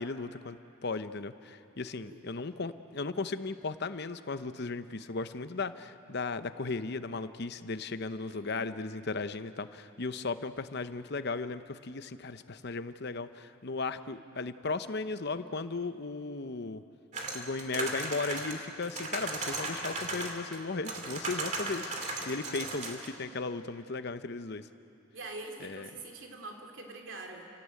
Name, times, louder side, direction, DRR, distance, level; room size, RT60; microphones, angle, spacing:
voice 1, 0.0-16.8 17.3-24.7 25.6-25.9, left 3 dB, 50° left, 11 dB, 0.8 m, -36 dB
voice 2, 8.3-8.7 25.1-27.5, right 2 dB, 60° right, 2 dB, 3.2 m, -44 dB
sound 1, 17.1-20.6 20.8-23.1, right 3 dB, 35° right, 2.5 m, -36 dB
29.5 x 17.5 x 8.4 m, 2.7 s
head